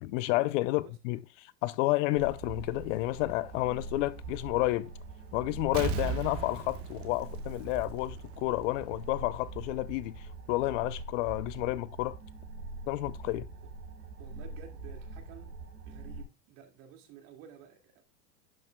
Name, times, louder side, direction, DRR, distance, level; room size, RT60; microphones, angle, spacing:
voice 1, 0.0-4.9 5.3-12.2 12.9-13.5, left 18 dB, 55° left, 0.6 m, -31 dB
sound 1, 2.1-16.2, right 3 dB, 90° right, 4.0 m, -43 dB
Explosion, 5.7-8.3 8.7-8.8, right 6 dB, 30° right, 1.0 m, -36 dB
voice 2, 14.2-15.6 15.9-18.0, right 9 dB, 55° right, 2.3 m, -52 dB
11.0 x 5.6 x 2.2 m
hypercardioid pair, 115°, 47 cm